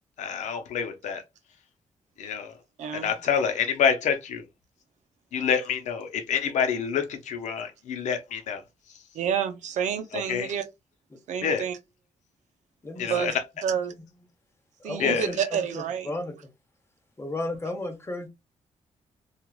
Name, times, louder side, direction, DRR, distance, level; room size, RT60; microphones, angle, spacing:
voice 1, 0.2-1.2 2.2-2.6 2.9-4.4 5.3-8.6 10.1-10.5 11.4-11.7 13.0-13.4 15.0-15.3, left 7 dB, 90° left, 0.7 m, -27 dB
voice 2, 2.8-3.1 9.1-10.6 11.3-11.8 13.0-13.3 13.6-13.9 14.8-16.1, right 8 dB, 90° right, 0.6 m, -29 dB
voice 3, 12.8-13.3 14.8-16.3 17.2-18.3, left 1 dB, 20° left, 0.8 m, -33 dB
3.0 x 2.4 x 2.3 m
cardioid pair, 100°, 12 cm